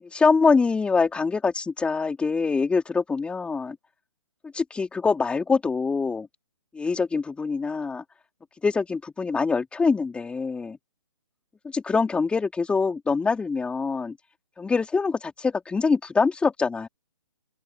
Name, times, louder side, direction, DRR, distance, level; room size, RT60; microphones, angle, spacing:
voice 1, 0.0-3.8 4.5-6.3 6.7-8.0 8.6-10.8 11.6-14.2 14.6-16.9, left 4 dB, 5° left, 3.0 m, -24 dB
open air
figure-of-eight pair, 135°, 17 cm